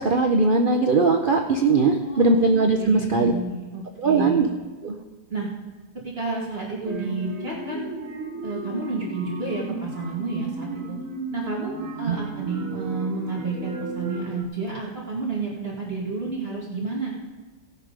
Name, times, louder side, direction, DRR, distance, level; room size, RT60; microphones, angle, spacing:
voice 1, 0.0-3.3 4.0-4.5 4.8-5.0 12.1-12.2, right 3 dB, 80° right, 3 dB, 0.4 m, -20 dB
voice 2, 2.0-2.3 2.8-4.4 5.3-5.5 6.0-7.9 8.4-11.0 11.3-17.1, right 3 dB, 35° right, -4 dB, 2.0 m, -30 dB
sound 1, 6.8-14.4, right 2 dB, 50° right, 1.6 m, -34 dB
17.0 x 6.7 x 5.1 m, 1.3 s
omnidirectional pair, 1.9 m